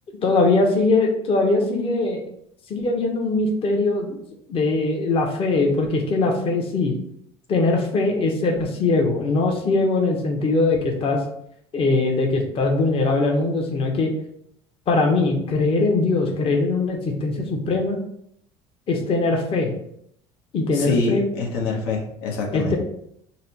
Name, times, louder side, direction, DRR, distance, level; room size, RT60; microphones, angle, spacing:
voice 1, 0.2-2.2 2.7-4.2 4.5-7.0 7.5-11.2 11.7-14.1 14.9-18.0 18.9-19.7 20.5-21.3 22.5-22.8, left 3 dB, 45° left, 1 dB, 0.9 m, -21 dB
voice 2, 20.7-22.8, left 4 dB, 80° left, 0 dB, 0.8 m, -25 dB
4.2 x 2.1 x 4.0 m, 0.71 s
supercardioid pair, 95°, 14 cm